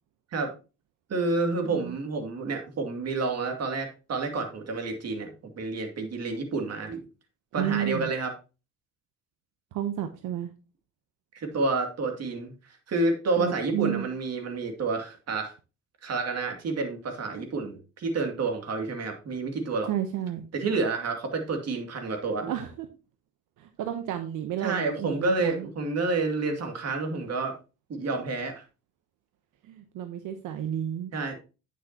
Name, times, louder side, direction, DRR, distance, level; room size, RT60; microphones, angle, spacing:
voice 1, 1.1-7.0 7.5-8.3 11.3-12.5 12.9-15.5 16.0-19.9 20.5-22.5 24.6-27.5 27.9-28.6 31.1-31.4, right 3 dB, 55° right, 4 dB, 2.5 m, -29 dB
voice 2, 1.6-2.0 7.6-8.1 9.7-10.5 13.4-14.1 19.9-20.4 22.5-22.9 23.6-25.7 29.6-31.1, right 10 dB, 85° right, 7 dB, 0.9 m, -31 dB
9.9 x 6.5 x 2.8 m, 0.30 s
cardioid pair, 90°, 30 cm